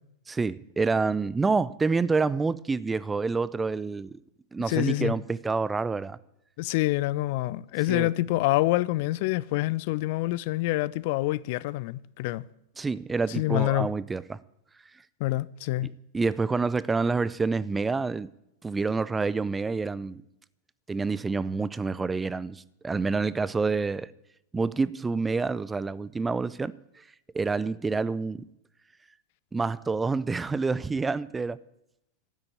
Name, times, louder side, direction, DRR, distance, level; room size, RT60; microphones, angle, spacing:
voice 1, 0.3-4.2 4.5-6.2 7.9-8.1 12.8-14.4 15.8-15.9 16.1-18.3 18.6-20.2 20.9-24.1 24.5-27.0 27.3-28.4 29.5-31.6, right 4 dB, 10° right, 0.5 m, -28 dB
voice 2, 4.7-5.1 6.6-12.4 13.3-13.9 15.2-15.9, left 18 dB, 50° left, 0.5 m, -26 dB
13.0 x 9.6 x 8.7 m
figure-of-eight pair, 90°, 0 cm